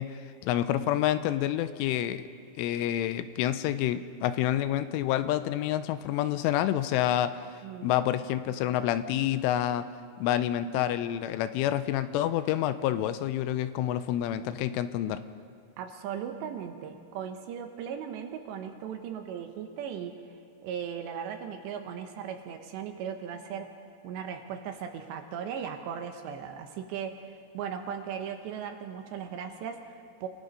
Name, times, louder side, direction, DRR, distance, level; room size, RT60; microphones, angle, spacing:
voice 1, 0.0-2.3 2.6-7.5 7.8-9.9 10.2-15.2, left 12 dB, 85° left, 12 dB, 3.1 m, -28 dB
voice 2, 15.8-20.2 20.6-23.7 24.0-30.3, right 8 dB, 75° right, 5 dB, 2.9 m, -37 dB
29.0 x 17.0 x 5.4 m, 2.2 s
omnidirectional pair, 5.7 m